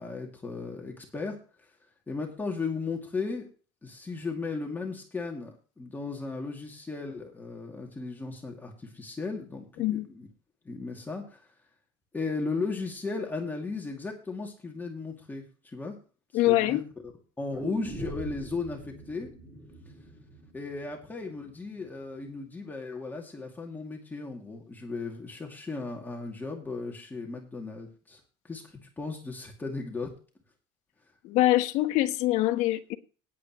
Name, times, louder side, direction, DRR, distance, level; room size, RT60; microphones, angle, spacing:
voice 1, 0.0-1.4 2.1-3.5 3.8-10.3 10.6-11.5 12.1-16.0 16.5-17.1 17.4-19.3 20.5-30.1, left 4 dB, 15° left, 2.4 m, -36 dB
voice 2, 16.3-16.8 31.2-33.0, left 16 dB, 65° left, 1.2 m, -24 dB
sound 1, 17.5-21.6 21.9-22.0, right 2 dB, 10° right, 6.3 m, -42 dB
18.5 x 8.1 x 3.1 m
cardioid pair, 125°, 13 cm